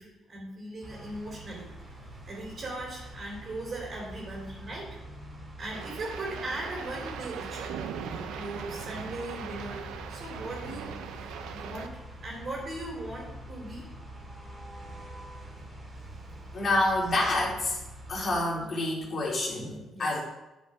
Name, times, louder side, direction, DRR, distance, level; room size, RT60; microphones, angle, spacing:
voice 1, 0.0-1.6 2.3-4.9 5.6-7.8 8.0-9.8 10.1-11.9 12.2-13.8 19.9-20.2, right 2 dB, 45° right, -3 dB, 3.6 m, -39 dB
sound 1, 0.8-18.3, right 1 dB, 25° right, 2.7 m, -45 dB
sound 2, 5.7-11.9, right 8 dB, 90° right, 0.8 m, -40 dB
voice 2, 16.5-17.8 18.1-20.2, left 2 dB, 45° left, -4 dB, 3.7 m, -28 dB
9.5 x 6.5 x 4.8 m, 1.0 s
cardioid pair, 90°, 0 cm